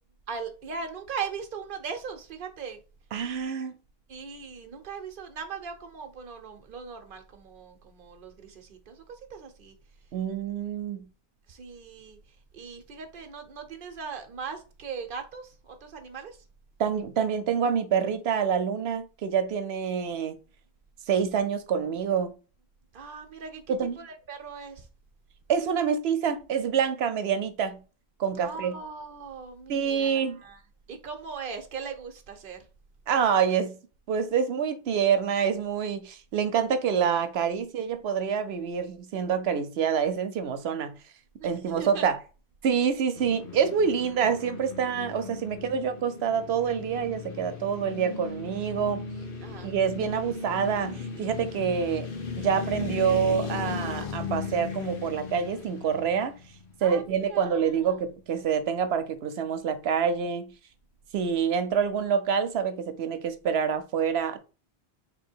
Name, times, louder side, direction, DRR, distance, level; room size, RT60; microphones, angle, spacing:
voice 1, 0.3-2.8 4.1-9.8 11.5-12.2 12.5-16.4 22.9-24.9 28.4-30.6 30.9-32.6 41.4-41.5 41.8-42.1 49.4-49.7 56.8-58.0, right 5 dB, 60° right, 1.0 m, -39 dB
voice 2, 3.1-3.7 10.1-11.1 16.8-20.4 21.1-22.4 23.7-24.0 25.5-27.8 28.2-28.8 29.7-30.4 33.1-33.8 34.1-41.0 41.4-42.2 42.6-49.0 49.6-52.1 52.4-56.4 56.8-60.5 61.1-64.4, right 7 dB, 90° right, 0.9 m, -27 dB
sound 1, 43.1-57.3, left 4 dB, 60° left, 1.0 m, -37 dB
3.7 x 2.9 x 4.4 m
omnidirectional pair, 1.0 m